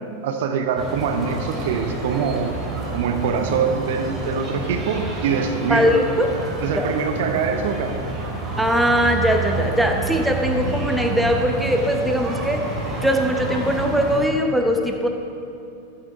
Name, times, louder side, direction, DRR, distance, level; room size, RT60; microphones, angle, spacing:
voice 1, 0.2-2.6 2.9-5.9 6.6-8.0, right 6 dB, 55° right, 6 dB, 0.8 m, -24 dB
sound 1, 0.8-14.2, right 2 dB, 20° right, 2.6 m, -29 dB
voice 2, 5.7-6.3 6.8-6.9 8.6-12.6 13.0-15.1, equal, 5° right, 3 dB, 1.0 m, -20 dB
14.0 x 9.6 x 3.7 m, 2.6 s
figure-of-eight pair, 90°, 0 cm